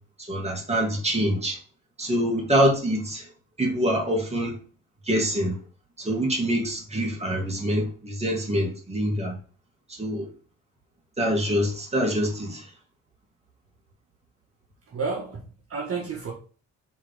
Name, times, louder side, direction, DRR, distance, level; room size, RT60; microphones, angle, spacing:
voice 1, 0.3-1.6 2.0-3.2 3.6-4.5 5.1-5.5 6.0-9.4 10.0-10.3 11.2-12.6, equal, 20° right, 2.8 m, -25 dB
voice 2, 14.9-16.3, right 4 dB, 50° right, 1.6 m, -31 dB
6.0 x 4.0 x 5.2 m
cardioid pair, 90°, 30 cm